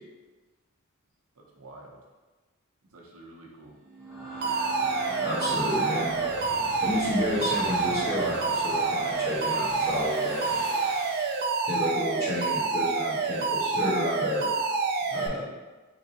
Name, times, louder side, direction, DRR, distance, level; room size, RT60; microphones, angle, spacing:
voice 1, 1.4-2.0 2.9-3.8 5.0-6.3, right 2 dB, 75° right, -1 dB, 0.7 m, -46 dB
sound 1, 3.8-11.5, equal, 5° left, 1.4 m, -38 dB
Alarm, 4.4-15.3, right 4 dB, 45° right, 0.3 m, -28 dB
voice 2, 5.2-6.1 6.8-10.4 11.7-14.5 15.1-15.4, left 1 dB, 45° left, -9 dB, 1.5 m, -31 dB
3.7 x 3.2 x 2.8 m, 1.3 s
head